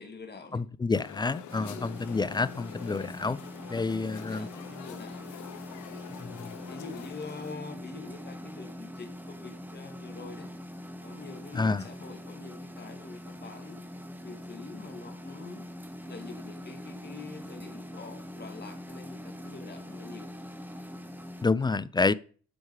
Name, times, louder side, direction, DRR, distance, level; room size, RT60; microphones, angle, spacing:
voice 1, 0.0-0.6 1.6-1.9 4.0-5.3 6.7-10.5 11.0-13.8 14.2-15.6 16.1-20.3 21.6-21.8, left 4 dB, 35° left, 2.2 m, -45 dB
voice 2, 0.5-3.4 3.7-4.5 6.2-6.5 11.5-11.9 21.4-22.1, left 3 dB, 15° left, 0.3 m, -28 dB
sound 1, 0.9-7.5, left 11 dB, 80° left, 0.9 m, -46 dB
sound 2, 1.5-21.5, left 1 dB, 5° right, 1.2 m, -43 dB
10.0 x 4.7 x 4.8 m
cardioid pair, 90°, 30 cm